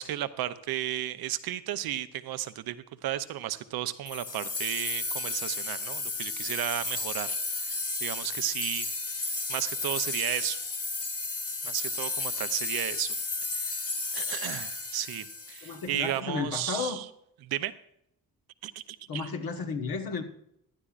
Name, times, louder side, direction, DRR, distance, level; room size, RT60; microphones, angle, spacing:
voice 1, 0.0-10.6 11.6-13.2 13.5-13.7 14.1-17.1 17.4-17.7 18.6-19.3, right 12 dB, 85° right, 0.6 m, -34 dB
sound 1, 4.1-16.1, left 3 dB, 40° left, 1.4 m, -33 dB
voice 2, 15.6-17.0 19.1-20.2, left 5 dB, 75° left, 1.5 m, -33 dB
16.0 x 11.5 x 2.5 m
supercardioid pair, 55°, 36 cm